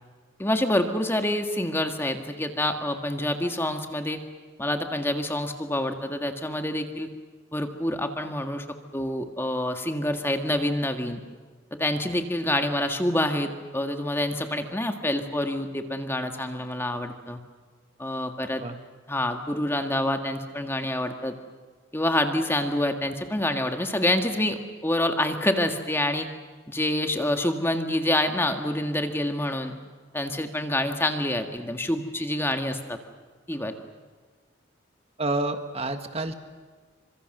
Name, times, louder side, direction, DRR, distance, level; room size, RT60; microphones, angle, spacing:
voice 1, 0.4-4.2 4.6-7.1 7.5-8.7 8.9-11.2 11.8-17.4 18.0-18.6 19.1-21.3 21.9-26.3 26.7-29.7 30.1-33.0 33.5-33.7, left 1 dB, 10° left, 5 dB, 1.7 m, -27 dB
voice 2, 35.2-36.3, right 2 dB, 30° right, 7 dB, 1.7 m, -28 dB
28.5 x 26.0 x 6.7 m, 1.5 s
head